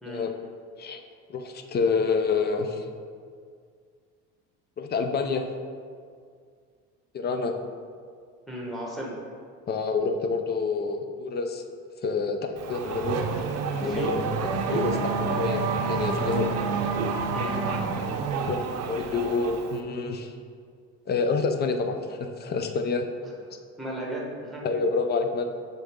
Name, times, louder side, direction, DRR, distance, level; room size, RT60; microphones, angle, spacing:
voice 1, 1.3-2.9 4.8-5.4 7.1-7.5 9.7-11.6 12.0-13.2 13.7-14.2 14.7-15.6 15.9-16.5 18.5-20.3 21.1-23.1 24.6-25.4, left 4 dB, 35° left, 6 dB, 0.6 m, -27 dB
voice 2, 8.5-9.2 13.8-14.2 17.3-17.6 23.8-24.7, right 1 dB, ahead, -3 dB, 1.4 m, -35 dB
Race car auto racing / Accelerating revving vroom, 12.6-19.8, right 4 dB, 55° right, 0.6 m, -28 dB
6.5 x 4.2 x 3.7 m, 2.1 s
cardioid pair, 105°, 30 cm